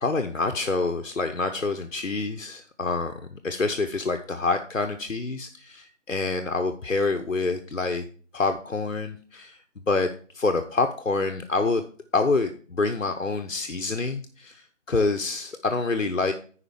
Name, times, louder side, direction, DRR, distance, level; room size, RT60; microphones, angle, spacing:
voice 1, 0.0-8.0 8.3-9.6 9.9-11.8 12.1-16.3, left 3 dB, 80° left, 6 dB, 0.9 m, -27 dB
10.0 x 5.0 x 4.9 m, 0.44 s
figure-of-eight pair, 165°, 39 cm